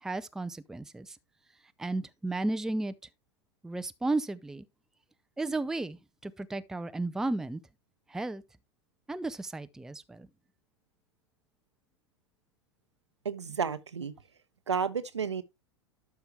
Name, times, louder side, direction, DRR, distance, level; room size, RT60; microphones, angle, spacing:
voice 1, 0.0-1.2 1.8-2.9 3.6-4.6 5.4-7.6 8.1-8.4 9.1-10.3, right 2 dB, 5° right, 0.4 m, -34 dB
voice 2, 13.2-14.1 14.7-15.4, right 6 dB, 80° right, 0.8 m, -31 dB
12.0 x 5.6 x 3.3 m
figure-of-eight pair, 90°, 15 cm